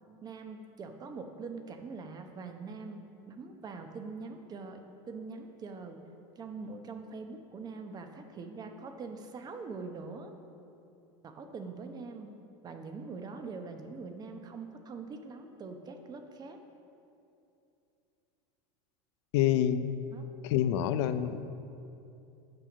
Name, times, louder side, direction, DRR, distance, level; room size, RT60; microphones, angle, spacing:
voice 1, 0.2-6.0 6.4-10.3 11.2-12.3 12.6-16.6 20.1-20.3, right 4 dB, 25° right, 6 dB, 0.8 m, -43 dB
voice 2, 19.3-19.9 20.4-21.4, left 11 dB, 75° left, 12 dB, 0.5 m, -27 dB
8.8 x 5.8 x 6.2 m, 2.7 s
supercardioid pair, 125°, 15 cm